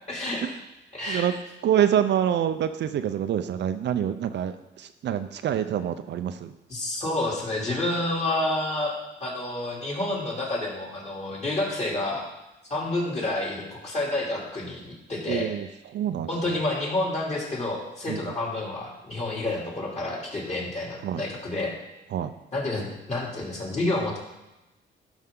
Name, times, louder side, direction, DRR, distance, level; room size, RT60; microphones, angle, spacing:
voice 1, 0.1-0.5 0.9-1.3 6.7-8.9 9.2-12.2 12.7-15.5 16.3-21.7 22.5-24.2, left 2 dB, 35° left, -3 dB, 3.1 m, -29 dB
voice 2, 1.6-6.5 15.3-15.7 15.9-16.6 18.1-18.2 21.0-21.2 22.1-22.3, right 9 dB, 60° right, 10 dB, 0.5 m, -26 dB
12.0 x 5.5 x 3.8 m, 0.98 s
cardioid pair, 90°, 20 cm